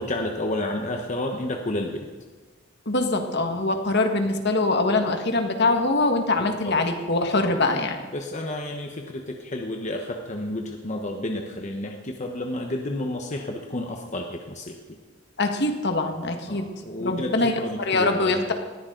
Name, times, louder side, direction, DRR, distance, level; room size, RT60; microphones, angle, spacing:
voice 1, 0.0-2.1 6.6-6.8 7.3-7.5 8.1-15.0 16.5-18.5, left 1 dB, 40° left, 2 dB, 1.1 m, -31 dB
voice 2, 2.9-8.0 15.4-16.7 17.0-17.5 17.8-18.5, left 2 dB, 60° left, 5 dB, 1.8 m, -23 dB
20.0 x 14.5 x 3.9 m, 1.4 s
head